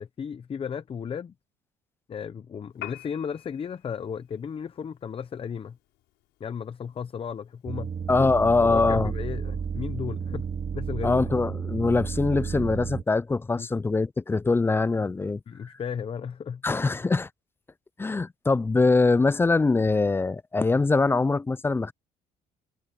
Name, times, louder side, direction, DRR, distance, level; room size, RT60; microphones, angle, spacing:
voice 1, 0.0-1.3 2.1-5.8 6.4-7.9 8.6-10.4 10.7-11.2 13.6-13.7 15.5-16.6, left 7 dB, 35° left, 0.7 m, -34 dB
Piano, 2.7-10.8, left 18 dB, 85° left, 5.5 m, -51 dB
sound 1, 7.7-13.0, right 6 dB, 40° right, 2.3 m, -32 dB
voice 2, 8.1-9.1 11.0-15.4 16.6-17.3 18.0-21.9, left 3 dB, 15° left, 0.4 m, -23 dB
cardioid pair, 110°, 17 cm